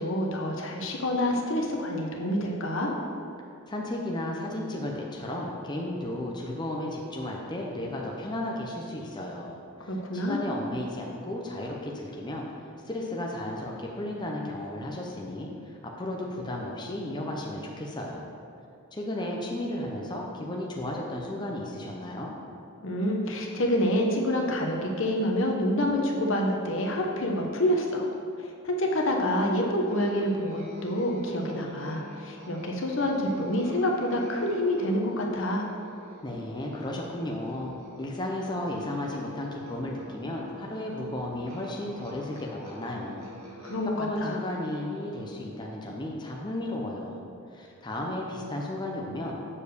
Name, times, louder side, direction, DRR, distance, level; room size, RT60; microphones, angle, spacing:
voice 1, 0.0-2.9 9.9-10.4 22.8-28.1 28.6-35.7 43.6-44.4, left 1 dB, 65° left, 0 dB, 1.0 m, -27 dB
voice 2, 3.7-9.6 9.8-12.4 12.8-18.3 18.9-22.3 36.2-43.3 43.6-47.2 47.5-49.4, left 1 dB, 20° left, -2 dB, 0.7 m, -34 dB
Musical instrument, 29.9-45.4, equal, 85° right, 2.0 m, -47 dB
7.2 x 4.5 x 6.7 m, 2.5 s
head